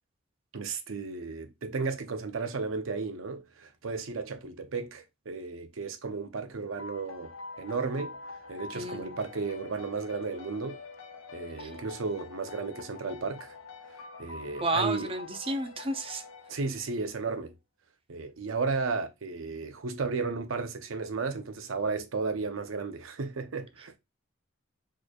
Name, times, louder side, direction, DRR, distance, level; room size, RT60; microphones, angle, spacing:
voice 1, 0.5-7.3 7.6-8.2 8.5-10.8 11.3-13.5 13.9-15.1 16.5-17.5 18.1-23.9, right 4 dB, 75° right, 0.6 m, -34 dB
sound 1, 6.8-17.2, left 4 dB, 85° left, 0.7 m, -46 dB
voice 2, 8.7-9.1 11.6-11.7 14.6-16.2, right 2 dB, 25° right, 0.5 m, -31 dB
4.3 x 3.1 x 2.3 m
head